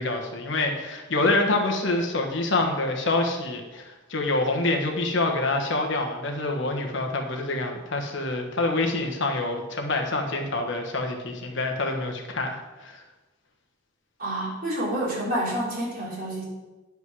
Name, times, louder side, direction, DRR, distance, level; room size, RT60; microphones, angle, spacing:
voice 1, 0.0-13.0, left 2 dB, 60° left, 2 dB, 1.3 m, -26 dB
voice 2, 14.2-16.5, right 1 dB, 45° right, -5 dB, 3.4 m, -28 dB
9.8 x 5.3 x 6.2 m, 1.1 s
head